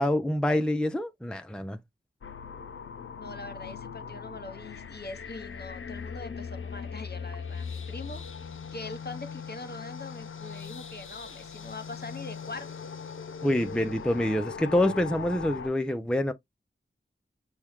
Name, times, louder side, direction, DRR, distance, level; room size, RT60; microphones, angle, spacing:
voice 1, 0.0-1.8 13.4-16.3, left 1 dB, 5° left, 0.5 m, -26 dB
sound 1, 2.2-15.7, left 6 dB, 75° left, 0.5 m, -40 dB
voice 2, 3.2-8.2 8.7-12.7, left 2 dB, 50° left, 1.0 m, -42 dB
6.1 x 2.2 x 3.5 m
wide cardioid pair, 55°, 21 cm